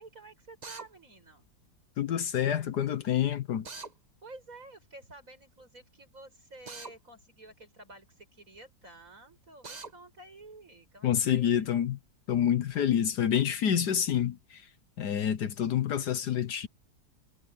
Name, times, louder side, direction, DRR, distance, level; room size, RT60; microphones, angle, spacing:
voice 1, 0.0-1.5 4.2-11.7, right 2 dB, 45° right, 8.3 m, -51 dB
Drill, 0.6-0.9 3.6-3.9 6.7-6.9 9.6-9.9, right 4 dB, 30° right, 1.0 m, -42 dB
voice 2, 2.0-3.6 11.0-12.0 12.3-14.6 15.0-16.7, left 9 dB, 65° left, 1.5 m, -27 dB
omnidirectional pair, 1.9 m